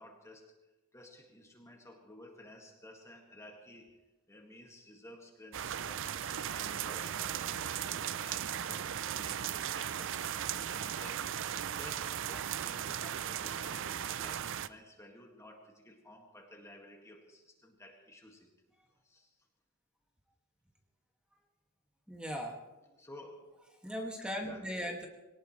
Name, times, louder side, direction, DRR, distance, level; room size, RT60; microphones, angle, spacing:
voice 1, 0.0-11.5 11.8-18.5 19.0-19.5 23.0-23.7 24.4-24.7, left 1 dB, 15° left, 1 dB, 2.0 m, -54 dB
sound 1, 5.5-14.7, right 9 dB, 60° right, 0.5 m, -37 dB
voice 2, 22.1-22.6 23.8-25.1, equal, 5° right, 1 dB, 2.1 m, -38 dB
23.0 x 18.5 x 3.2 m, 1.1 s
head